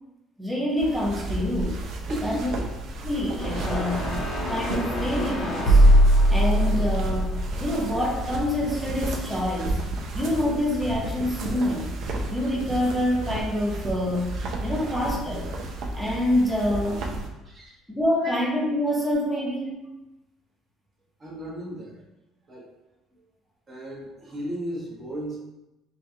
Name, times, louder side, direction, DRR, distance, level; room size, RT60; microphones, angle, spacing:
voice 1, 0.4-1.8 2.2-2.5 3.0-4.1 4.5-5.8 6.3-7.3 7.6-9.8 10.1-12.0 12.3-14.3 14.6-15.5 16.0-17.1 17.9-19.9, left 1 dB, ahead, -4 dB, 0.7 m, -26 dB
sound 1, 0.8-17.3, right 2 dB, 50° right, 0.5 m, -33 dB
voice 2, 2.1-2.6 6.0-6.2 14.8-14.9 17.4-17.8 18.2-18.3 21.2-22.0 22.5-22.7 23.2-23.3 23.7-25.4, right 1 dB, 20° right, -6 dB, 1.0 m, -35 dB
sound 2, 3.3-8.6, equal, 40° left, 0.8 m, -21 dB
4.8 x 2.3 x 2.7 m, 0.98 s
cardioid pair, 175°, 0 cm